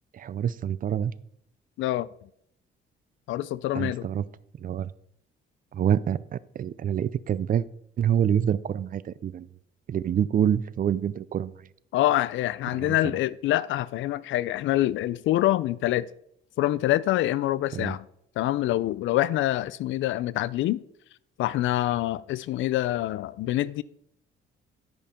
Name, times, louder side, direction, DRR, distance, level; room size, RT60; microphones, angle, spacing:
voice 1, 0.1-1.1 3.7-4.2 4.6-4.9 5.7-7.6 8.0-9.5 9.9-11.5 12.8-13.0 17.7-17.9, right 9 dB, 45° right, 0.4 m, -26 dB
voice 2, 3.3-4.1 11.9-16.1 16.6-18.1 18.4-20.8 21.4-23.8, left 14 dB, 75° left, 0.4 m, -25 dB
10.5 x 5.2 x 4.3 m
cardioid pair, 90°, 20 cm